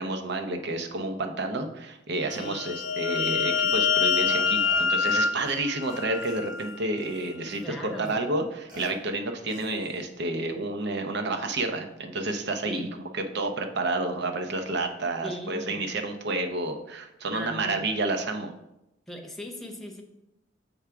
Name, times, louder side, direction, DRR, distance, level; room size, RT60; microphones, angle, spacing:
voice 1, 0.0-12.9 13.1-18.5, right 2 dB, 60° right, 5 dB, 0.7 m, -30 dB
sound 1, 2.3-6.8, left 6 dB, 75° left, 0.5 m, -26 dB
Burping eructation, 4.3-5.6 5.8-7.7 8.0-8.2 8.7-8.9 9.5-10.0, equal, 40° right, 1.5 m, -46 dB
voice 2, 7.6-8.3 12.7-12.9 15.2-15.8 17.3-17.9 19.1-20.0, equal, ahead, 0 dB, 0.8 m, -38 dB
7.2 x 3.4 x 4.7 m, 0.89 s
head